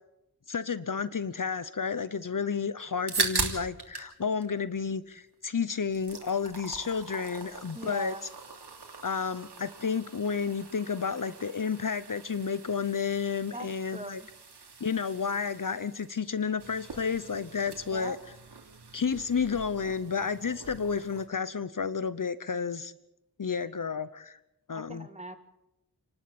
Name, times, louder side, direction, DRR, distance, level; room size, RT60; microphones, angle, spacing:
voice 1, 0.5-8.1 9.0-14.2 14.8-18.2 18.9-22.9 23.4-24.4 24.7-25.1, left 6 dB, 55° left, 15 dB, 0.9 m, -31 dB
sound 1, 2.8-4.1 4.4-5.4 5.7-21.3, right 4 dB, 90° right, 3.1 m, -40 dB
voice 2, 7.7-8.2 13.5-14.3 17.9-18.2 24.7-25.4, right 1 dB, 15° right, 8 dB, 2.2 m, -40 dB
29.5 x 12.0 x 8.7 m, 0.90 s
wide cardioid pair, 55°, 39 cm